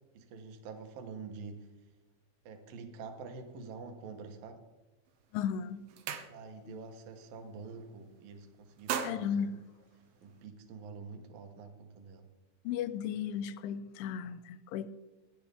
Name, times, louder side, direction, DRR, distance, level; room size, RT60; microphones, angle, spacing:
voice 1, 0.1-1.7 2.4-4.7 6.3-9.5 10.2-12.3, right 4 dB, 70° right, 6 dB, 2.2 m, -47 dB
sound 1, 5.1-5.3 5.6-6.8 7.1-7.4 7.7-8.3 8.6-10.5, right 8 dB, 85° right, 3.5 m, -40 dB
voice 2, 5.3-5.8 6.7-6.8 9.0-9.6 12.7-14.9, left 8 dB, 85° left, 14 dB, 3.0 m, -35 dB
17.0 x 10.5 x 3.5 m, 1.1 s
omnidirectional pair, 5.5 m